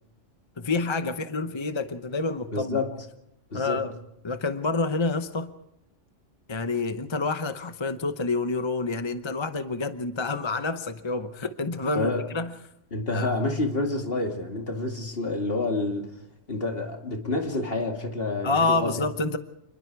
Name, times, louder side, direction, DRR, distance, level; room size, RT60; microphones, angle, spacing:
voice 1, 0.6-2.8 3.5-3.9 4.2-5.5 6.5-12.5 13.1-13.3 18.4-19.4, left 3 dB, 25° left, 9 dB, 0.8 m, -28 dB
voice 2, 2.5-2.9 3.5-3.8 11.9-12.2 12.9-16.1 16.5-19.0, left 2 dB, 50° left, 3 dB, 2.6 m, -28 dB
28.0 x 21.0 x 4.7 m, 0.79 s
omnidirectional pair, 1.3 m